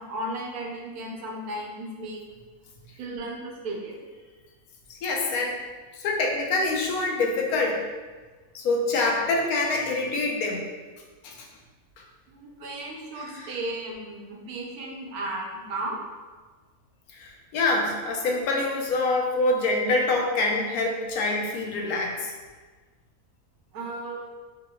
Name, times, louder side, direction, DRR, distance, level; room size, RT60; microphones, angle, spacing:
voice 1, 0.0-2.2 3.0-4.0 12.3-16.0 23.7-24.3, right 1 dB, 85° right, 0 dB, 1.2 m, -35 dB
voice 2, 5.0-5.6 6.0-7.8 8.5-10.6 11.2-11.3 13.3-13.6 17.1-22.3, left 2 dB, 75° left, 0 dB, 1.1 m, -25 dB
3.8 x 3.7 x 2.2 m, 1.4 s
omnidirectional pair, 1.5 m